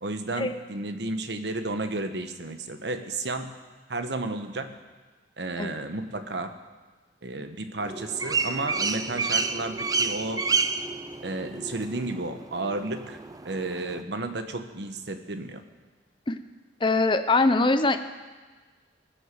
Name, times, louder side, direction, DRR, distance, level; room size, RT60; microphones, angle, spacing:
voice 1, 0.0-3.5 3.9-4.8 5.4-6.5 7.2-10.5 11.2-13.2 13.4-15.6, right 2 dB, 70° right, 8 dB, 1.1 m, -32 dB
sound 1, 7.8-14.0, right 4 dB, 20° right, 0.5 m, -30 dB
voice 2, 16.8-18.0, left 3 dB, 30° left, 9 dB, 0.7 m, -22 dB
20.0 x 6.7 x 7.6 m, 1.3 s
head